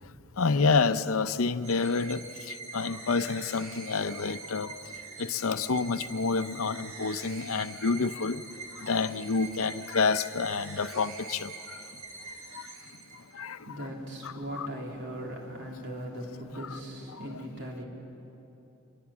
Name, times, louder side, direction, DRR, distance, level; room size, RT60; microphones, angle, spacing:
voice 1, 0.4-4.7 5.2-8.4 8.7-11.5 13.3-13.6 14.2-14.7 16.7-16.8 17.1-17.2, left 4 dB, 75° left, 0.7 m, -28 dB
sound 1, 1.6-13.5, right 4 dB, 75° right, 2.2 m, -44 dB
voice 2, 13.0-17.8, equal, 55° right, 3.6 m, -39 dB
24.0 x 21.5 x 7.3 m
head